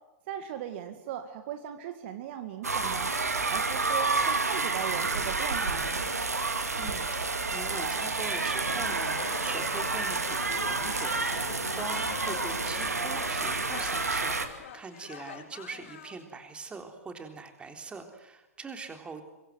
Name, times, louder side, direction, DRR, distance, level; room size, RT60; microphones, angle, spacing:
voice 1, 0.3-3.1 3.5-6.1, right 9 dB, 45° right, 8 dB, 1.9 m, -38 dB
sound 1, 2.6-14.5, right 3 dB, 80° right, 2.5 m, -29 dB
voice 2, 6.8-19.2, right 4 dB, 15° right, 6 dB, 3.5 m, -43 dB
sound 2, 8.6-16.2, left 10 dB, 50° left, 2.8 m, -43 dB
25.5 x 23.0 x 8.0 m, 0.99 s
figure-of-eight pair, 105°, 8 cm